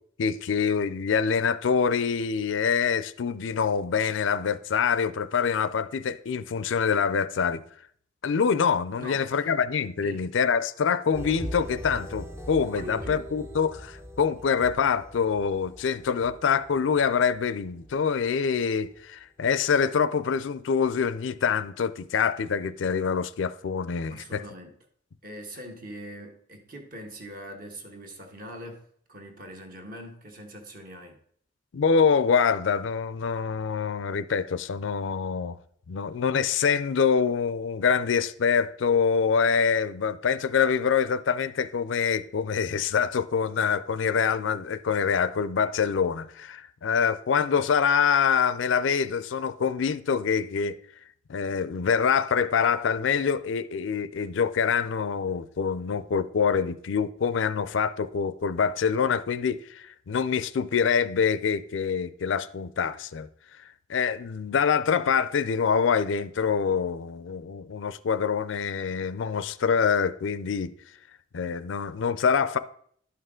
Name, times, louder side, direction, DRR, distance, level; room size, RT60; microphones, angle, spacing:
voice 1, 0.2-7.6 8.2-24.4 31.7-35.6 35.9-50.8 51.3-63.3 63.9-70.7 71.3-72.6, left 6 dB, 80° left, 0.4 m, -25 dB
voice 2, 9.0-9.5 10.0-10.3 12.6-13.2 24.1-24.7 25.2-31.2, equal, 45° right, 1.3 m, -42 dB
sound 1, 11.1-19.0 19.4-19.6, equal, 15° right, 0.5 m, -41 dB
11.5 x 5.6 x 3.7 m
head